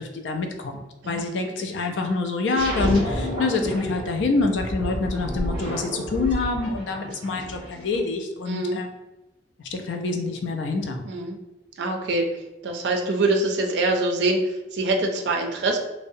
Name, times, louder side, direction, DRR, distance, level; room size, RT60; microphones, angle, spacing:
voice 1, 0.0-8.9 9.7-11.0, left 3 dB, 85° left, 4 dB, 0.4 m, -26 dB
sound 1, 2.6-8.0, equal, 30° right, 1.3 m, -30 dB
voice 2, 8.5-8.8 11.0-11.4 11.8-12.3 12.6-15.8, right 2 dB, 70° right, 2 dB, 0.4 m, -24 dB
2.6 x 2.0 x 2.5 m, 1.0 s
head